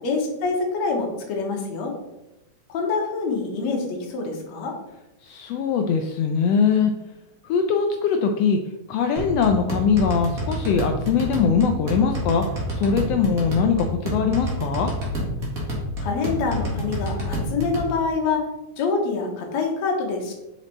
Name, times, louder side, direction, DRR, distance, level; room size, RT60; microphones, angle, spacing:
voice 1, 0.0-2.0 2.7-4.7 16.0-18.5 18.8-20.3, left 4 dB, 70° left, 1 dB, 2.3 m, -26 dB
voice 2, 5.2-6.9 7.4-8.6 8.9-12.5 12.7-14.9, left 6 dB, 90° left, 5 dB, 1.4 m, -21 dB
sound 1, 9.2-17.9, equal, 40° right, 1.6 m, -28 dB
5.1 x 5.1 x 4.2 m, 0.95 s
omnidirectional pair, 3.3 m